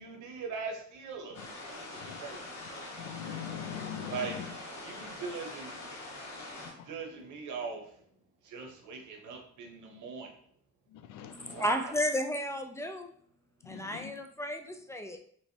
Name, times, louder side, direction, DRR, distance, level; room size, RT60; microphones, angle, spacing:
voice 1, 0.0-1.4 1.7-2.4 4.1-5.8 6.8-7.9 8.4-10.3 11.4-11.9, right 5 dB, 75° right, 2 dB, 1.0 m, -41 dB
sound 1, 1.3-6.7, left 2 dB, 65° left, 1.2 m, -44 dB
voice 2, 3.0-4.1 11.1-11.6 13.7-14.1, left 9 dB, 90° left, 9 dB, 0.5 m, -41 dB
voice 3, 11.3-13.1 13.6-15.2, equal, 10° left, 5 dB, 0.4 m, -33 dB
3.2 x 3.1 x 2.7 m, 0.62 s
cardioid pair, 90°, 30 cm